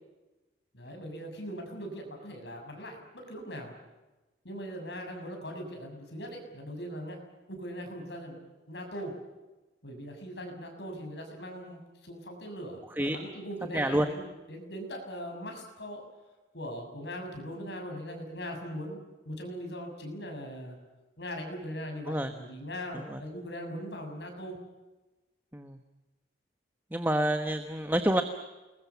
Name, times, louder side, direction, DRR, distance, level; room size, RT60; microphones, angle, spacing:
voice 1, 0.7-3.7 4.5-7.2 7.5-8.4 8.7-9.1 9.8-14.2 14.5-16.1 16.5-19.0 19.3-20.8 21.2-24.6, equal, 65° left, 3 dB, 6.9 m, -40 dB
voice 2, 13.7-14.1 22.1-22.3 22.9-23.2 25.5-25.8 26.9-28.2, right 1 dB, 10° right, 7 dB, 1.2 m, -28 dB
29.0 x 21.5 x 7.1 m, 1.1 s
head